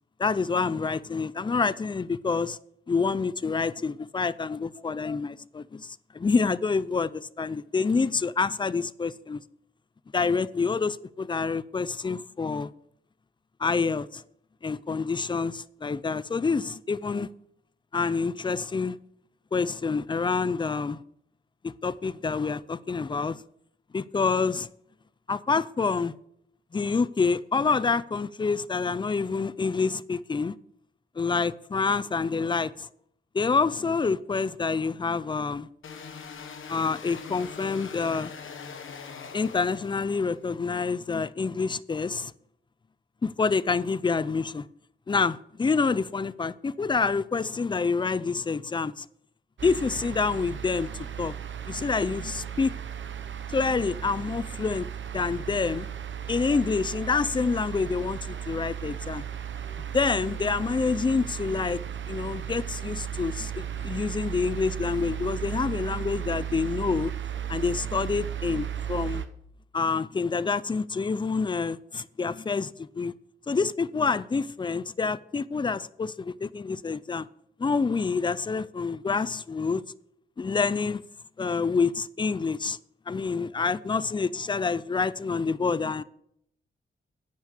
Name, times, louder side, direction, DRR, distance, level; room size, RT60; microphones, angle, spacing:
voice 1, 0.2-2.6 2.9-9.4 10.1-12.7 13.6-14.2 14.6-17.3 17.9-19.0 19.5-21.0 21.6-23.4 23.9-24.7 25.3-26.1 26.7-30.5 31.2-32.9 33.3-35.7 36.7-38.3 39.3-42.3 43.2-44.7 45.1-49.1 49.6-51.3 51.7-52.8 53.5-54.9 55.1-55.9 56.3-59.2 59.9-61.8 62.1-67.1 67.5-69.2 69.7-73.1 73.5-77.3 77.6-79.8 80.4-81.0 81.4-82.8 83.1-86.0, left 4 dB, 25° left, 0.4 m, -27 dB
sound 1, 35.8-40.4, left 6 dB, 85° left, 1.3 m, -42 dB
sound 2, 49.6-69.3, right 9 dB, 70° right, 0.9 m, -35 dB
9.8 x 6.6 x 6.6 m
wide cardioid pair, 100°, 20 cm